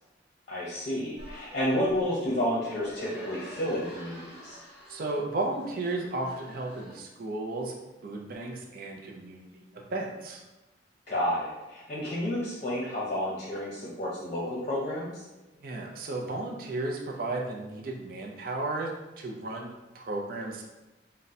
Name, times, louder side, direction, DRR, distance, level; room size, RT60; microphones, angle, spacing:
voice 1, 0.5-4.6 11.1-15.2, left 1 dB, 40° left, -6 dB, 0.7 m, -31 dB
sound 1, 1.2-7.0, left 1 dB, 10° right, 1.0 m, -48 dB
voice 2, 4.9-7.7 8.0-10.4 15.6-20.6, right 2 dB, 50° right, 0 dB, 0.5 m, -34 dB
3.7 x 2.1 x 4.1 m, 1.1 s
head